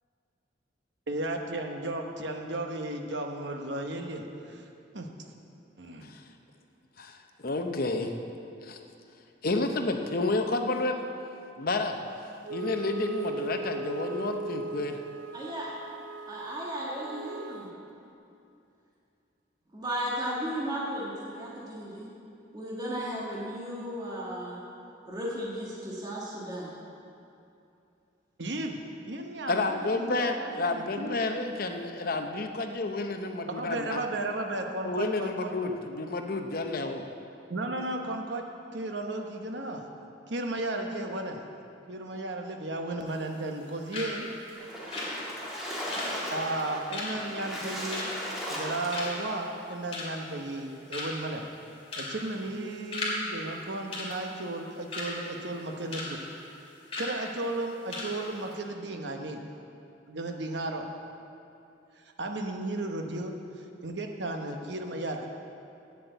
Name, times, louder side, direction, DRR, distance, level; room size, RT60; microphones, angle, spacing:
voice 1, 1.1-4.6 4.9-5.1 5.8-6.1 28.4-28.8 29.1-31.2 33.5-35.5 37.5-38.5 38.7-39.8 40.3-41.4 41.9-44.3 46.3-48.1 48.5-51.5 52.0-56.2 57.0-59.4 60.1-60.8 62.2-63.3 63.8-65.3, right 2 dB, 65° right, 3 dB, 1.0 m, -34 dB
voice 2, 7.0-8.1 8.6-8.8 9.4-11.0 11.6-12.0 12.5-15.0 29.5-34.0 34.8-37.0, left 3 dB, 50° left, 5 dB, 0.8 m, -30 dB
Wind instrument woodwind instrument, 12.4-17.7, right 3 dB, 85° right, 0.5 m, -38 dB
voice 3, 15.3-15.7 16.3-17.7 19.7-22.0 22.5-24.6 25.1-26.7, equal, 20° right, -5 dB, 1.5 m, -35 dB
sound 1, 43.1-43.7 43.9-44.1 44.4-48.6 48.9-49.3 49.7-50.3 50.6-50.7 50.9-51.3 51.9-52.1 52.4-53.2 53.4-53.6 53.9-55.1 55.5-56.1 56.4-56.5 56.9-57.1 57.5-57.6 57.9-58.1 58.4-58.5, left 2 dB, 30° left, 2.5 m, -36 dB
Splash splatter, 44.6-49.4, equal, ahead, 2.0 m, -36 dB
8.7 x 7.8 x 8.0 m, 2.7 s
head